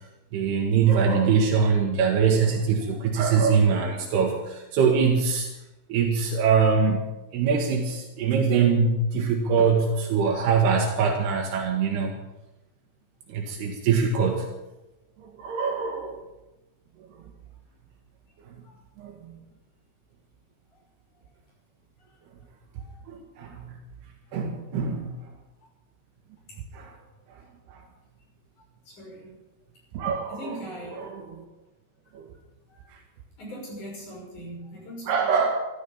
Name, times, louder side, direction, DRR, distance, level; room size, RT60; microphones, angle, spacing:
voice 1, 0.3-5.5 5.9-12.1 13.3-14.5 15.2-16.2 19.0-19.4 23.1-23.8 24.3-25.2 26.7-26.9 27.7-27.8 29.9-30.6 31.0-31.5 32.2-32.3 35.1-35.6, right 5 dB, 85° right, 1 dB, 3.7 m, -23 dB
voice 2, 28.9-29.4 30.3-31.0 32.7-32.9 33.4-35.4, equal, 50° left, -3 dB, 7.6 m, -41 dB
13.5 x 13.0 x 7.1 m, 1.0 s
omnidirectional pair, 4.5 m